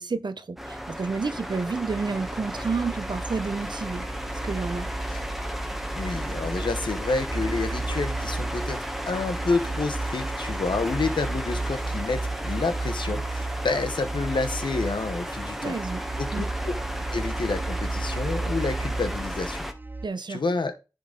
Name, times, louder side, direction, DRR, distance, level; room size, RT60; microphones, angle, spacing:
voice 1, 0.0-4.1 4.4-4.9 15.6-16.0 16.3-16.5 20.0-20.4, right 4 dB, 70° right, 0.7 m, -30 dB
Fan Inside, 0.6-19.7, equal, 5° right, 1.1 m, -34 dB
sound 1, 1.9-20.1, right 3 dB, 25° right, 0.4 m, -34 dB
voice 2, 5.9-15.7 16.2-16.8 17.1-19.7 20.3-20.7, left 3 dB, 85° left, 0.9 m, -29 dB
10.5 x 3.9 x 3.8 m
cardioid pair, 40°, 8 cm